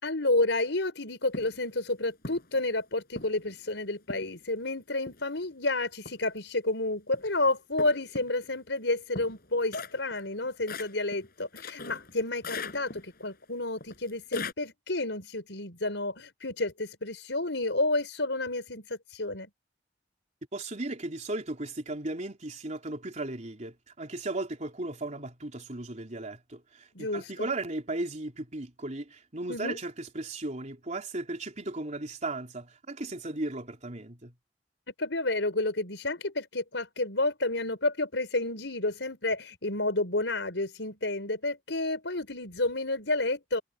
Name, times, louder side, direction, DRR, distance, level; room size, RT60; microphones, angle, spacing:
voice 1, 0.0-19.5 26.9-27.5 29.5-29.8 35.0-43.6, left 2 dB, 85° left, 5.5 m, -30 dB
sound 1, 1.3-1.6 2.2-2.6 3.2-3.5 4.1-4.4 5.1-5.5 6.1-6.4 7.1-7.3 7.8-8.5 9.2-12.1 12.4-13.2 13.8-14.5, left 3 dB, 55° left, 6.4 m, -39 dB
voice 2, 20.5-34.3, right 2 dB, 40° right, 3.7 m, -36 dB
head